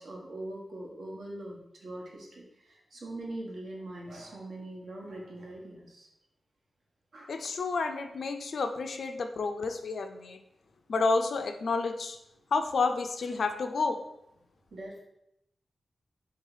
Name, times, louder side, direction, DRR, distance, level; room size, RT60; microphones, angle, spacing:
voice 1, 0.0-6.1 7.1-7.4 14.7-15.0, right 1 dB, 70° right, -1 dB, 1.1 m, -42 dB
voice 2, 7.3-10.4 10.9-12.2 12.5-14.0, left 4 dB, 70° left, 6 dB, 0.4 m, -30 dB
3.8 x 2.8 x 4.7 m, 0.82 s
wide cardioid pair, 140°, 0 cm